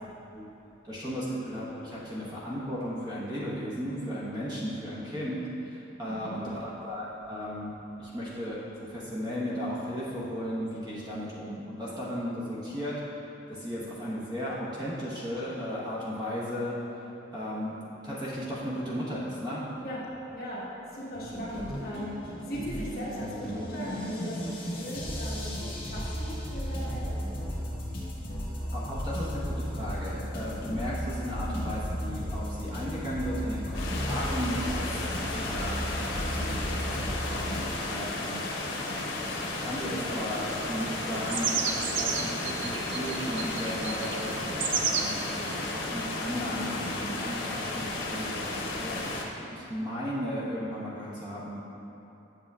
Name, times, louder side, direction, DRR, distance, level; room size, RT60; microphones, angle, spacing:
voice 1, 0.8-8.6 8.9-12.9 13.5-16.8 17.3-17.7 18.0-19.6 28.7-38.4 39.2-49.1 49.4-51.6, equal, 20° right, -8 dB, 1.1 m, -35 dB
voice 2, 6.0-6.6 19.8-20.0 20.3-20.7 20.9-27.2 37.8-38.2, equal, 50° left, -7 dB, 1.3 m, -38 dB
sound 1, 21.1-37.7, equal, 30° left, 1.1 m, -34 dB
sound 2, 33.7-49.2, left 2 dB, 90° left, 0.8 m, -33 dB
sound 3, 40.5-45.9, right 5 dB, 80° right, 0.5 m, -33 dB
8.0 x 6.9 x 2.4 m, 3.0 s
head